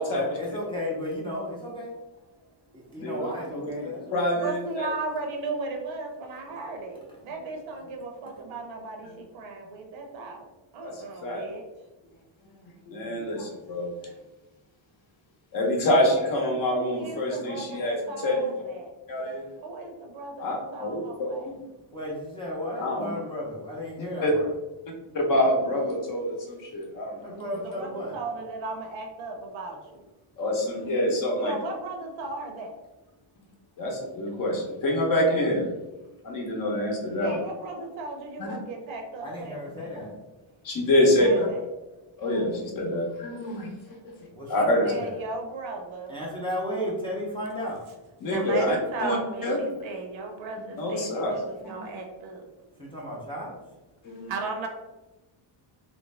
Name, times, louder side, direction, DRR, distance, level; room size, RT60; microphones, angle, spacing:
voice 1, 0.1-1.9 2.7-4.1 21.9-24.5 27.2-28.2 39.2-40.1 44.3-45.1 46.1-47.8 52.8-53.5, left 1 dB, 10° left, -6 dB, 0.5 m, -34 dB
voice 2, 3.0-3.7 4.1-4.9 10.8-11.5 12.8-14.1 15.5-18.6 19.1-19.4 20.4-21.5 22.8-23.1 24.0-24.3 25.1-27.6 30.4-31.6 33.8-35.7 36.2-37.4 38.4-38.6 40.0-40.1 40.6-41.5 42.2-43.7 44.0-44.1 44.5-44.9 48.2-49.6 50.6-51.9 54.0-54.4, left 1 dB, 45° left, 1 dB, 0.7 m, -26 dB
voice 3, 4.4-7.0 7.2-10.4 10.7-11.6 16.7-18.4 18.7-18.9 19.6-21.4 27.6-29.8 31.4-32.7 37.2-39.9 41.2-41.4 44.6-46.2 48.3-51.1 51.7-52.4 54.3-54.7, right 3 dB, 70° right, 2 dB, 0.8 m, -36 dB
3.2 x 2.6 x 3.2 m, 1.1 s
cardioid pair, 180°, 48 cm